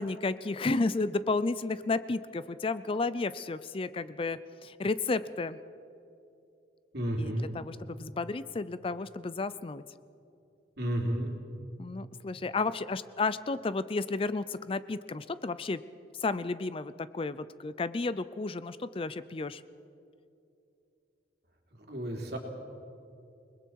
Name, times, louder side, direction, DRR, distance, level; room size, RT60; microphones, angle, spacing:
voice 1, 0.0-5.6 7.2-9.8 11.8-15.8 16.2-19.6, left 3 dB, 30° left, 15 dB, 0.4 m, -32 dB
voice 2, 6.9-7.5 10.8-11.3 21.8-22.4, right 1 dB, 60° right, 1 dB, 3.2 m, -32 dB
29.0 x 20.5 x 4.7 m, 2.7 s
head